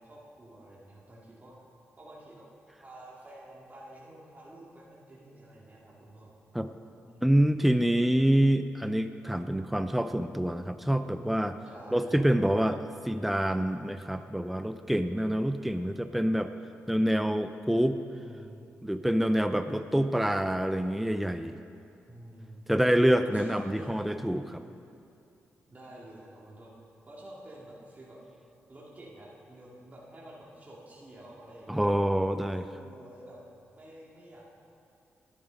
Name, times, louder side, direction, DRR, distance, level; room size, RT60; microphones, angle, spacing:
voice 1, 0.0-1.5 2.0-2.5 2.8-6.3 7.0-7.6 11.6-12.2 17.9-18.6 22.1-22.7 23.2-24.5 25.7-26.7 27.1-28.2 28.7-32.0 32.4-33.4 33.7-34.6, right 1 dB, 30° right, -6 dB, 2.4 m, -49 dB
voice 2, 7.2-11.6 11.9-12.8 13.0-16.5 16.9-18.0 18.8-21.6 22.7-24.6 31.7-32.7, right 1 dB, 5° right, 9 dB, 0.5 m, -26 dB
11.0 x 10.0 x 5.2 m, 2.6 s
cardioid pair, 60°, 5 cm